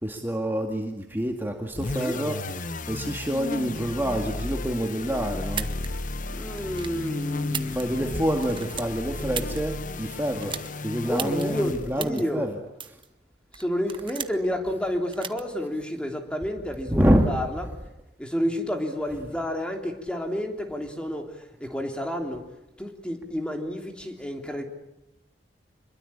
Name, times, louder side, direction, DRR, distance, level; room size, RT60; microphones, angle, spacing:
voice 1, 0.0-2.4 2.9-5.7 7.6-10.6 10.8-12.5 16.9-17.3, equal, 10° right, 2 dB, 2.1 m, -27 dB
sound 1, 1.7-12.1, left 2 dB, 50° left, 1.1 m, -33 dB
sound 2, 5.4-5.9 6.6-7.0 7.4-8.1 8.4-9.6 10.4-10.7 11.2-11.4 12.0-12.2 12.8-13.1 13.5-14.5 15.1-15.4, right 7 dB, 30° right, 1.1 m, -34 dB
voice 2, 6.3-8.3 11.0-12.5 13.6-17.7 18.2-21.2 21.6-22.4 22.8-24.6, equal, 5° left, 4 dB, 3.2 m, -30 dB
26.5 x 22.5 x 8.7 m, 0.92 s
head